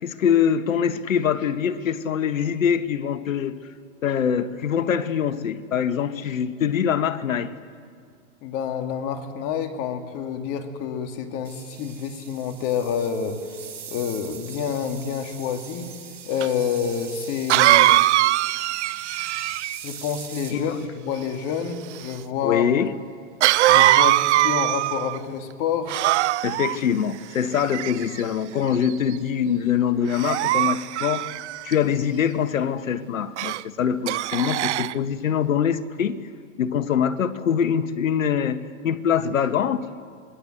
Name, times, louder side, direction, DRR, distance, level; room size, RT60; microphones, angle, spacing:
voice 1, 0.0-3.6 4.0-7.5 20.5-20.8 22.4-22.9 26.4-31.3 31.6-36.2 36.6-39.9, left 8 dB, 80° left, 1.6 m, -24 dB
voice 2, 8.4-13.6 13.9-15.9 16.3-18.0 19.8-22.7 23.7-26.0, left 7 dB, 35° left, 2.6 m, -28 dB
sound 1, 11.4-20.8, right 7 dB, 75° right, 5.7 m, -42 dB
Cough, 16.4-16.5 17.5-19.9 23.4-25.2 25.9-26.8 27.5-28.2 28.8-29.1 30.1-31.7 33.4-33.6 34.1-34.9, right 16 dB, 60° right, 0.6 m, -21 dB
26.5 x 21.0 x 8.0 m
hypercardioid pair, 130°, 39 cm